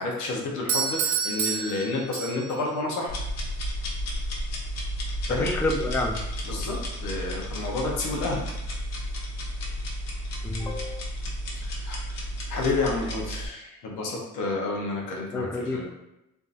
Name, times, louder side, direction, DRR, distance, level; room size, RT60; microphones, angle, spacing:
voice 1, 0.0-3.2 5.3-5.5 6.5-8.5 11.6-12.2 12.5-15.9, left 3 dB, 90° left, -1 dB, 0.9 m, -30 dB
Doorbell, 0.7-2.7, right 6 dB, 75° right, 0.6 m, -28 dB
sound 1, 3.1-13.5, equal, 60° left, 0.8 m, -32 dB
voice 2, 5.4-6.2 10.4-11.0 15.3-15.9, left 2 dB, 5° left, 2 dB, 0.4 m, -29 dB
3.6 x 2.7 x 2.5 m, 0.88 s
cardioid pair, 90°, 30 cm